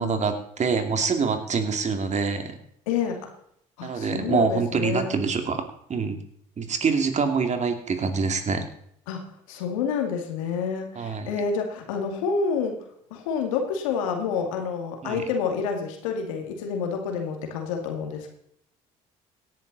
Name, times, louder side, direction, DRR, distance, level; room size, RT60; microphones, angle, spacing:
voice 1, 0.0-2.6 3.8-6.2 6.6-8.7 11.0-11.3 15.0-15.2, right 5 dB, 45° right, 6 dB, 2.6 m, -25 dB
voice 2, 2.9-3.3 3.8-5.1 9.1-9.2 9.5-12.8 13.1-18.3, left 6 dB, 85° left, 4 dB, 2.3 m, -28 dB
17.5 x 10.5 x 4.1 m, 0.69 s
hypercardioid pair, 60°, 17 cm